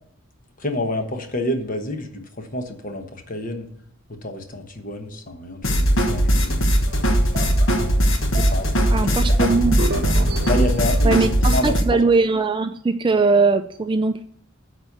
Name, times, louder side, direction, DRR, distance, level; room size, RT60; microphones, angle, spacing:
voice 1, 0.6-3.7 4.2-6.7 8.3-9.5 10.5-11.7, left 1 dB, 40° left, 5 dB, 1.1 m, -28 dB
sound 1, 5.6-11.8, equal, 65° left, 1.2 m, -19 dB
sound 2, 6.9-11.2, right 1 dB, 50° right, 1.0 m, -29 dB
voice 2, 8.9-9.8 11.0-14.2, right 3 dB, 25° right, 9 dB, 0.3 m, -20 dB
9.1 x 4.4 x 6.7 m, 0.66 s
head